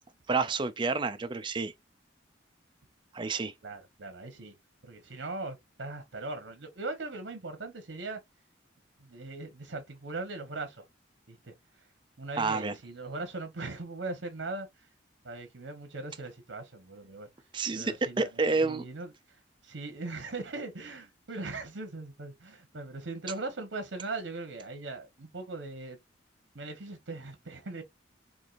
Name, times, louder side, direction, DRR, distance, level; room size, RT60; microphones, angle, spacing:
voice 1, 0.3-1.7 3.1-3.5 12.4-12.7 17.5-18.8, right 4 dB, 25° right, 0.4 m, -29 dB
voice 2, 3.6-4.5 4.8-8.2 9.0-10.8 11.3-11.5 12.2-14.9 15.2-17.3 17.7-26.0 26.5-27.8, right 3 dB, 70° right, 1.0 m, -40 dB
4.5 x 2.5 x 2.5 m
head